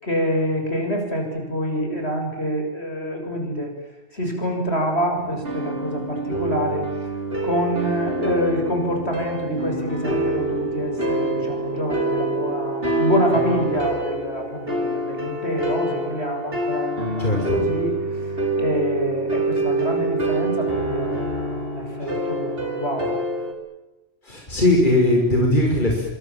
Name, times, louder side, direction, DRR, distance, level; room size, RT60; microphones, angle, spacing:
voice 1, 0.0-3.7 4.1-6.8 7.4-17.9 18.3-23.1, equal, 65° left, 3 dB, 7.5 m, -26 dB
sound 1, 5.2-23.5, right 2 dB, 55° right, 5.9 m, -26 dB
voice 2, 17.2-17.6 22.0-22.2 24.2-26.1, left 1 dB, 45° left, 0 dB, 6.4 m, -19 dB
27.5 x 26.5 x 7.5 m, 0.98 s
omnidirectional pair, 1.2 m